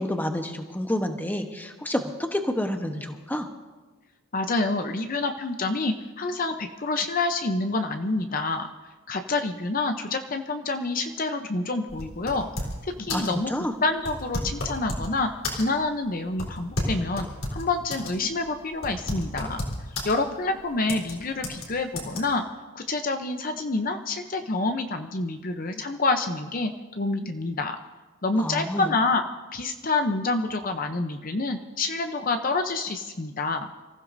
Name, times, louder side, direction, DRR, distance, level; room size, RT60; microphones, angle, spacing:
voice 1, 0.0-3.5 13.1-13.7 28.4-28.9, left 1 dB, 10° left, 5 dB, 1.0 m, -29 dB
voice 2, 4.3-8.7 9.1-12.5 12.8-13.5 13.8-19.6 20.0-22.4 22.7-27.8 28.2-29.2 29.5-33.7, left 3 dB, 40° left, 6 dB, 0.7 m, -27 dB
sound 1, 11.9-12.8 13.1-13.4 14.0-15.1 15.4-15.9 16.4-18.1 18.4-18.5 18.8-20.1 20.9-21.1 21.4-21.7 22.0-22.2, left 1 dB, 65° left, 3.8 m, -31 dB
27.5 x 15.5 x 2.7 m, 1.3 s
head